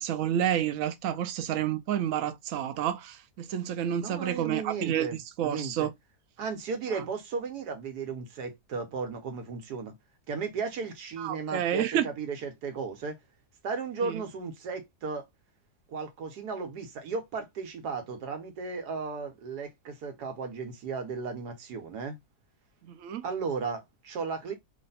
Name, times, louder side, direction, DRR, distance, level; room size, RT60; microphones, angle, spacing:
voice 1, 0.0-5.1 5.4-5.9 6.9-7.0 11.2-12.1 14.0-14.2 22.9-23.2, right 10 dB, 65° right, 0.9 m, -29 dB
voice 2, 4.0-5.9 6.4-9.9 10.3-13.2 13.6-15.2 15.9-22.2 23.2-24.5, right 5 dB, 85° right, 1.4 m, -35 dB
3.1 x 2.6 x 4.0 m
omnidirectional pair, 1.7 m